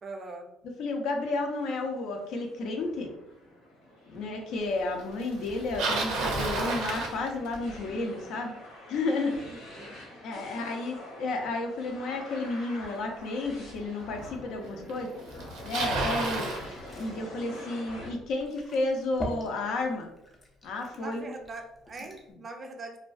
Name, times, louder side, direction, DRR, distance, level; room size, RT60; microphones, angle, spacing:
voice 1, 0.0-0.5 9.4-9.9 10.4-10.8 20.9-23.0, right 3 dB, 30° right, 4 dB, 0.4 m, -42 dB
voice 2, 0.8-3.1 4.1-8.5 8.9-9.5 10.2-15.1 15.6-16.5 16.9-20.1 20.6-21.3, left 2 dB, 70° left, 3 dB, 0.5 m, -32 dB
sound 1, 1.3-18.1, left 1 dB, 90° left, 1.0 m, -47 dB
Bicycle, 5.4-7.8 12.8-12.9 13.8-13.9 14.9-15.0 15.2-16.6, right 3 dB, 85° right, 0.5 m, -30 dB
Glass / Fill (with liquid), 15.2-22.3, equal, 20° left, 0.5 m, -44 dB
2.4 x 2.2 x 2.4 m, 0.81 s
cardioid pair, 120°, 0 cm